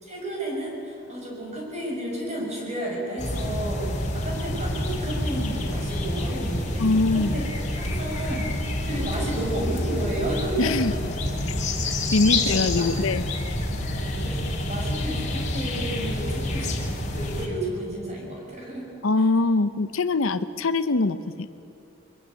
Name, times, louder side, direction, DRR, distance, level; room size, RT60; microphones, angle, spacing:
voice 1, 0.0-6.8 7.1-11.0 12.3-12.9 13.9-16.7 17.1-18.9, right 1 dB, 30° right, -2 dB, 6.2 m, -32 dB
sound 1, 3.2-17.5, left 1 dB, 35° left, 2.9 m, -28 dB
voice 2, 6.8-7.5 10.6-10.9 12.1-13.3 19.0-21.5, left 3 dB, 70° left, 11 dB, 0.7 m, -23 dB
24.0 x 15.5 x 9.7 m, 2.7 s
head